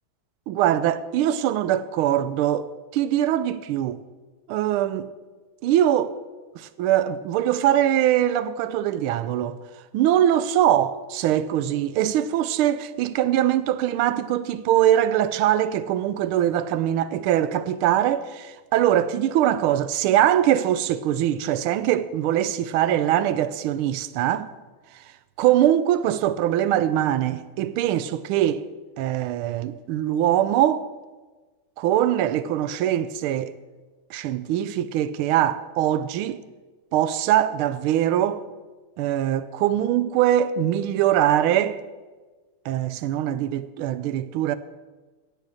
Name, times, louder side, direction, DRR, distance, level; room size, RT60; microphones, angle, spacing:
voice 1, 0.5-4.0 4.5-5.1 5.6-6.1 6.5-9.6 9.9-24.5 25.4-28.6 29.0-30.9 31.8-33.6 34.1-36.4 36.9-38.4 39.0-41.8 42.6-44.5, right 11 dB, 90° right, 1.5 m, -22 dB
16.5 x 6.7 x 6.4 m
omnidirectional pair, 2.3 m